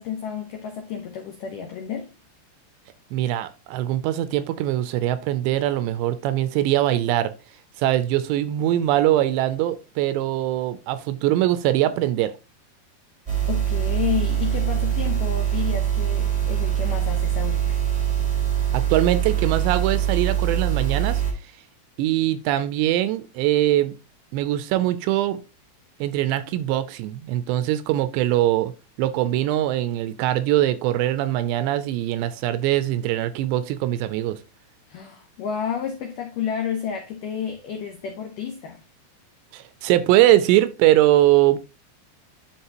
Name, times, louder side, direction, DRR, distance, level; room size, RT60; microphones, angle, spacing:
voice 1, 0.0-2.1 13.5-17.8 34.9-38.8, left 8 dB, 90° left, 1.8 m, -31 dB
voice 2, 3.1-7.3 7.8-12.3 18.7-21.2 22.0-23.9 24.3-25.4 26.0-28.7 29.0-34.4 39.5-41.6, right 14 dB, 85° right, 2.6 m, -22 dB
sound 1, 13.3-21.3, right 10 dB, 35° right, 0.6 m, -23 dB
12.0 x 4.0 x 2.9 m
omnidirectional pair, 5.2 m